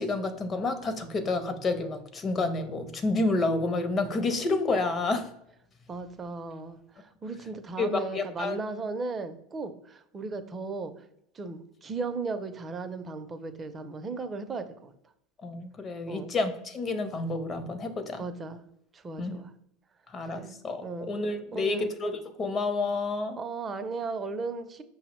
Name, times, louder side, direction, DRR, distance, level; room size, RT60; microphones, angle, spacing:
voice 1, 0.0-5.3 7.8-8.6 15.4-18.2 19.2-19.4 20.1-23.4, left 3 dB, 30° left, 9 dB, 0.6 m, -29 dB
voice 2, 5.9-10.9 11.3-14.9 16.1-16.3 18.2-18.6 18.9-19.5 20.3-21.1 21.5-21.9 23.4-24.8, right 3 dB, 30° right, 9 dB, 0.5 m, -36 dB
5.5 x 2.0 x 3.0 m, 0.77 s
hypercardioid pair, 90°, 0 cm